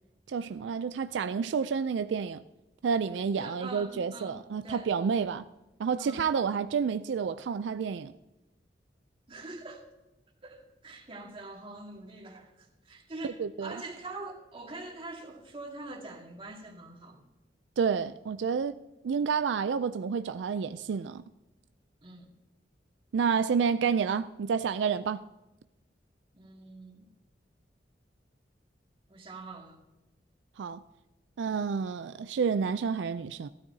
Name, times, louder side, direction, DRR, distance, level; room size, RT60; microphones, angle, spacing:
voice 1, 0.3-2.4 2.8-5.4 5.8-8.1 13.4-13.8 17.8-18.8 19.0-21.2 23.1-25.2 30.6-30.8 31.4-33.5, right 6 dB, 80° right, 0.4 m, -29 dB
voice 2, 3.4-4.9 6.0-6.3 9.3-9.8 10.4-17.2 22.0-22.3 24.9-25.0 26.3-27.1 29.1-29.8, right 2 dB, 30° right, 2.0 m, -44 dB
15.5 x 13.0 x 2.7 m
head